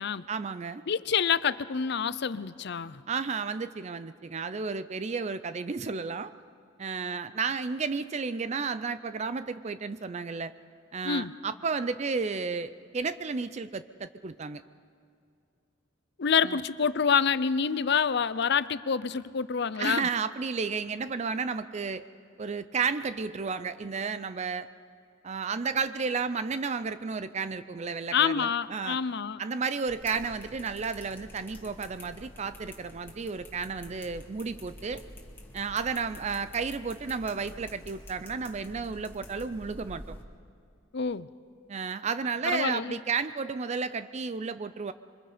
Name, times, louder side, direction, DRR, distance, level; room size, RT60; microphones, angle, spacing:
voice 1, 0.3-0.8 3.1-6.3 6.8-10.5 10.9-14.6 16.4-16.6 19.8-22.0 22.4-24.7 25.2-29.0 29.4-35.0 35.5-40.1 41.7-44.9, right 5 dB, 35° right, 13 dB, 0.4 m, -32 dB
voice 2, 0.9-3.0 11.0-11.3 16.2-20.1 28.1-29.4 40.9-41.3 42.4-43.0, left 6 dB, 60° left, 16 dB, 0.6 m, -27 dB
sound 1, 29.9-40.2, left 1 dB, 10° left, 2.2 m, -48 dB
26.5 x 24.0 x 5.1 m, 2.4 s
head